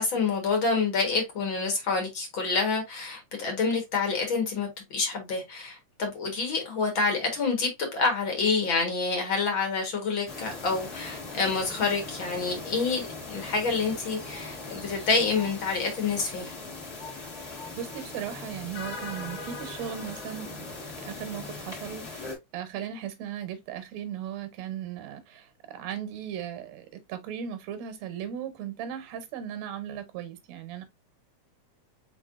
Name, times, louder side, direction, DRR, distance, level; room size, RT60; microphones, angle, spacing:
voice 1, 0.0-16.6, left 4 dB, 50° left, 1.8 m, -28 dB
sound 1, 10.3-22.4, left 3 dB, 30° left, 1.3 m, -40 dB
voice 2, 17.8-20.7 21.0-30.8, right 9 dB, 70° right, 2.1 m, -37 dB
4.6 x 4.6 x 2.5 m
omnidirectional pair, 3.5 m